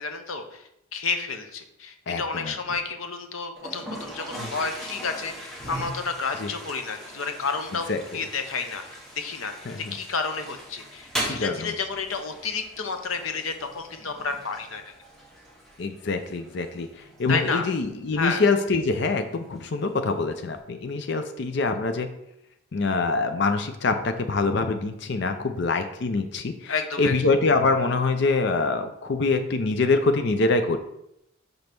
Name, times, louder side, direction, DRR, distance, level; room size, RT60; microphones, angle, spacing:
voice 1, 0.0-7.9 8.1-8.8 9.2-9.5 9.8-14.8 17.3-17.7 18.1-18.4 26.7-27.2, left 4 dB, 75° left, 6 dB, 0.8 m, -30 dB
voice 2, 2.1-2.5 4.4-4.5 6.4-6.5 7.9-8.0 9.7-9.9 11.3-11.7 15.8-16.9 17.2-22.1 22.7-30.8, left 3 dB, 55° left, 7 dB, 0.5 m, -25 dB
Toilet flush, 3.6-20.6, equal, ahead, 1.1 m, -40 dB
5.3 x 3.9 x 5.9 m, 0.80 s
head